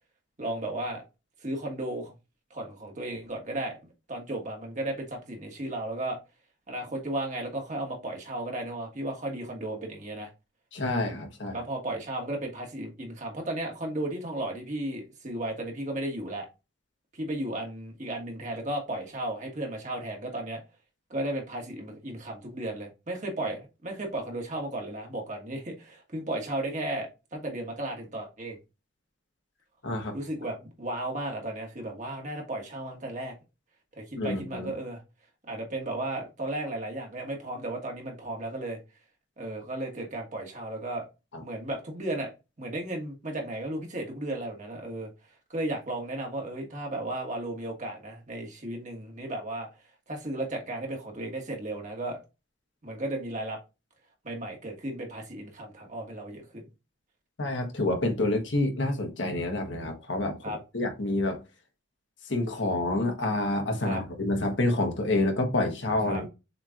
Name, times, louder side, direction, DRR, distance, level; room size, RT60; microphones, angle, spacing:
voice 1, 0.4-1.0 1.4-2.1 2.5-3.8 4.1-6.2 6.7-10.3 11.5-16.5 17.1-20.6 21.1-28.6 30.1-33.3 34.0-35.0 35.5-38.8 39.4-41.0 41.4-42.3 42.6-45.1 45.5-49.7 50.1-52.2 52.8-53.6 54.2-56.6 60.4-60.6 63.8-64.0 66.0-66.2, right 1 dB, 40° right, 1.5 m, -34 dB
voice 2, 10.7-11.6 29.8-30.2 34.2-34.7 41.3-41.4 57.4-61.4 62.3-66.3, left 2 dB, 70° left, 1.3 m, -28 dB
6.6 x 3.1 x 2.4 m
head